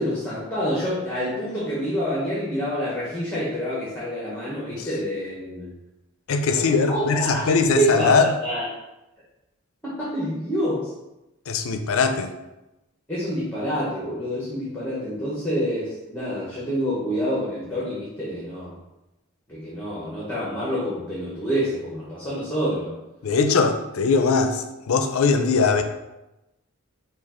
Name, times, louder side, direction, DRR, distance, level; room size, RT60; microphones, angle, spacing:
voice 1, 0.0-5.7 6.5-8.7 9.8-10.9 13.1-18.8 19.5-22.9, equal, 10° left, -8 dB, 1.0 m, -27 dB
voice 2, 6.3-8.3 11.5-12.3 23.2-25.8, left 4 dB, 75° left, 7 dB, 0.5 m, -21 dB
4.9 x 2.5 x 4.2 m, 0.97 s
head